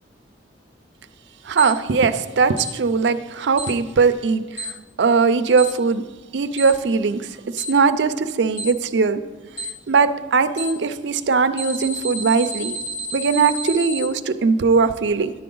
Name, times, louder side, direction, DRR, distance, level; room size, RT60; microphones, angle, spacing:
voice 1, 1.5-4.7 5.0-6.0 6.3-7.3 7.5-9.2 9.9-12.7 13.1-15.3, right 5 dB, 70° right, 10 dB, 0.5 m, -20 dB
Alarm, 1.6-1.7 2.6-2.7 3.6-3.7 4.6-4.7 5.6-5.7 6.6-6.7 7.6-7.7 8.6-8.7 9.6-9.7 10.6-10.7 11.6-14.0, right 3 dB, 80° left, 2.3 m, -30 dB
10.5 x 7.7 x 3.8 m, 1.3 s
head